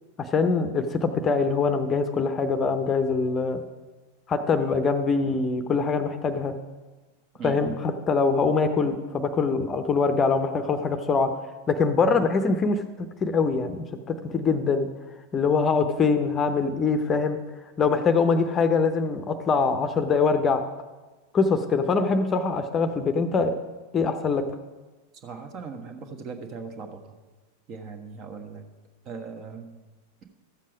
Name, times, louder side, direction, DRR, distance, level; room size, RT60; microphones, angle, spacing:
voice 1, 0.2-3.6 4.3-6.5 7.4-11.3 11.7-12.8 13.2-14.9 15.3-17.4 17.8-20.6 21.3-23.5 23.9-24.4, left 4 dB, 25° left, 8 dB, 0.8 m, -23 dB
voice 2, 7.4-7.8 25.2-27.2 27.7-28.7 29.0-29.8, right 5 dB, 35° right, 5 dB, 1.3 m, -38 dB
13.5 x 7.4 x 5.0 m, 1.2 s
figure-of-eight pair, 90°, 0 cm